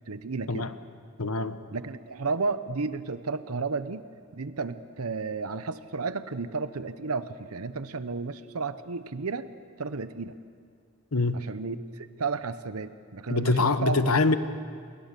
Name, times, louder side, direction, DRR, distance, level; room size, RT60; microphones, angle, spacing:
voice 1, 0.1-0.7 1.7-4.0 4.3-9.5 9.8-10.4 11.3-14.0, right 4 dB, 90° right, 12 dB, 0.9 m, -32 dB
voice 2, 1.2-1.6 11.1-11.4 13.3-14.4, left 3 dB, 80° left, 11 dB, 1.2 m, -24 dB
29.0 x 22.0 x 6.8 m, 2.1 s
head